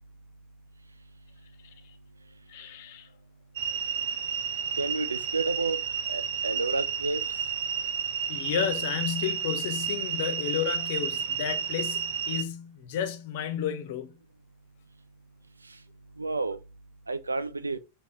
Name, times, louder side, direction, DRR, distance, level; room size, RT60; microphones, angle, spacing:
voice 1, 2.5-3.1 8.3-14.2, left 9 dB, 50° left, 1.2 m, -32 dB
sound 1, 3.6-12.4, right 7 dB, 55° right, 0.9 m, -31 dB
voice 2, 4.8-5.8 6.1-7.2 16.2-16.6 17.1-17.8, right 3 dB, 80° right, 0.5 m, -30 dB
6.9 x 3.0 x 4.9 m
figure-of-eight pair, 90°, 0 cm